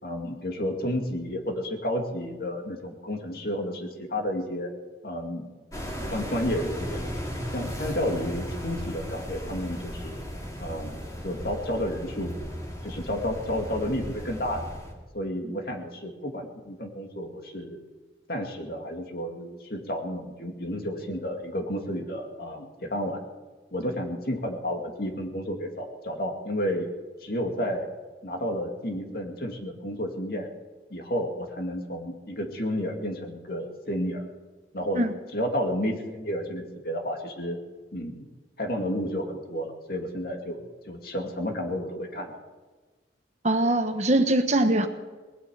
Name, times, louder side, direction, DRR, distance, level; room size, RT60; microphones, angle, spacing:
voice 1, 0.0-4.7 5.0-5.5 6.1-7.0 7.5-10.2 10.6-11.0 11.2-12.4 12.8-14.6 15.1-17.8 18.3-23.2 23.7-26.9 27.2-27.9 28.2-30.5 30.9-34.2 34.7-35.0 35.3-37.6 37.9-38.3 38.6-40.6 40.9-42.4, equal, 55° left, 2 dB, 2.4 m, -31 dB
sound 1, 5.7-14.9, equal, 20° left, 2.6 m, -36 dB
voice 2, 43.4-44.9, right 1 dB, 40° right, 7 dB, 1.1 m, -22 dB
19.5 x 8.4 x 8.6 m, 1.3 s
head